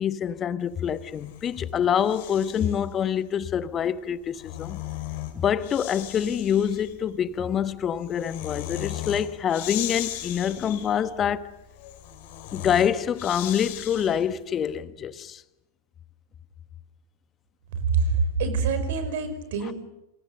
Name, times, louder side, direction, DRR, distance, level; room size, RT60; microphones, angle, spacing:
voice 1, 0.0-4.8 5.3-11.5 12.5-15.4, left 8 dB, 25° left, 1.4 m, -26 dB
Breathing, 0.9-2.9 4.1-14.4, left 13 dB, 50° left, 5.3 m, -37 dB
voice 2, 17.8-19.7, right 4 dB, 55° right, 5.3 m, -25 dB
29.5 x 29.0 x 6.7 m
figure-of-eight pair, 90°, 0 cm